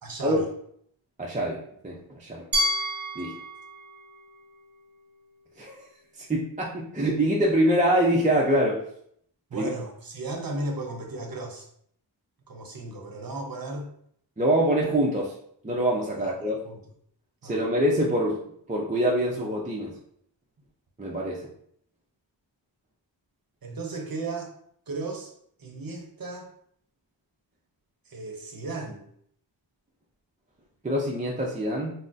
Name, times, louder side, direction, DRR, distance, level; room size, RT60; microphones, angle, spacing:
voice 1, 0.0-0.5 9.5-11.7 12.5-13.9 16.2-16.8 17.4-17.6 23.6-24.5 24.9-25.3 25.6-26.5 28.1-29.0, right 2 dB, 45° right, 3 dB, 0.7 m, -35 dB
voice 2, 1.2-2.5 3.2-3.3 5.6-5.8 6.3-8.8 9.5-9.7 14.4-15.3 15.6-16.6 17.4-18.4 18.7-19.9 21.0-21.5 30.8-31.9, right 1 dB, 15° right, -3 dB, 0.5 m, -25 dB
Glass, 2.5-5.4, equal, 90° right, 0.7 m, -31 dB
3.8 x 2.0 x 2.5 m, 0.66 s
wide cardioid pair, 55°, 47 cm